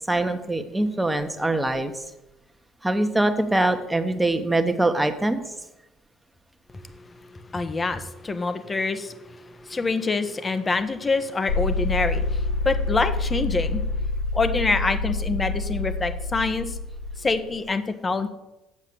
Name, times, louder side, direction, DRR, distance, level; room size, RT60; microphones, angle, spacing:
voice 1, 0.1-2.0 2.8-5.5, right 2 dB, 10° right, 7 dB, 1.3 m, -23 dB
voice 2, 7.3-13.8 14.3-16.7 17.2-18.3, left 3 dB, 25° left, 10 dB, 1.1 m, -26 dB
sound 1, 11.5-17.6, left 2 dB, 75° left, 0.5 m, -27 dB
8.6 x 7.3 x 6.8 m, 0.94 s
hypercardioid pair, 60°, 0 cm